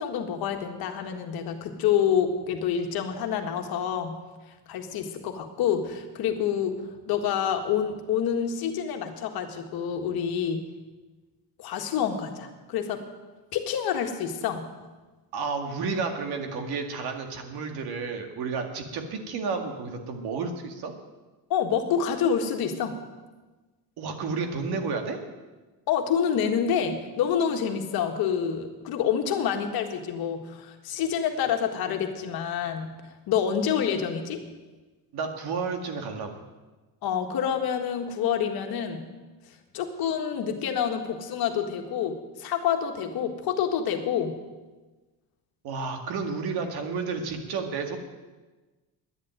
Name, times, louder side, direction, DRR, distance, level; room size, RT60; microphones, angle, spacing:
voice 1, 0.0-4.2 4.7-6.8 7.1-10.6 11.6-13.0 13.5-14.7 21.5-23.0 25.9-33.0 33.3-34.4 37.0-39.0 39.7-44.3, left 8 dB, 65° left, 5 dB, 1.8 m, -27 dB
voice 2, 15.3-20.9 24.0-25.2 35.1-36.5 45.6-48.0, right 4 dB, 65° right, 5 dB, 2.1 m, -31 dB
11.0 x 10.5 x 9.2 m, 1.2 s
cardioid pair, 165°, 40 cm